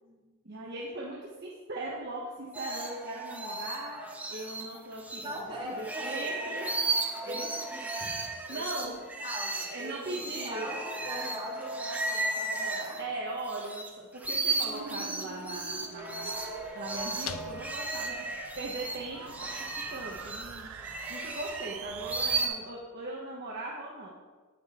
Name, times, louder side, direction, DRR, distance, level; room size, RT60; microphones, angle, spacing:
voice 1, 0.4-5.2 5.6-6.7 7.2-7.4 8.5-8.9 9.7-10.7 13.0-16.3 16.7-20.7 21.1-24.1, right 2 dB, 50° right, -4 dB, 1.1 m, -39 dB
sound 1, 2.5-5.4 5.7-13.9 14.1-22.5, right 3 dB, 5° right, 0.8 m, -35 dB
voice 2, 5.2-6.7 7.2-8.9 9.2-13.0, equal, 25° right, -4 dB, 2.3 m, -42 dB
sound 2, 14.2-22.4, right 6 dB, 80° right, 0.4 m, -45 dB
sound 3, 15.6-21.6, left 7 dB, 65° left, 0.4 m, -48 dB
9.0 x 6.5 x 4.2 m, 1.4 s
head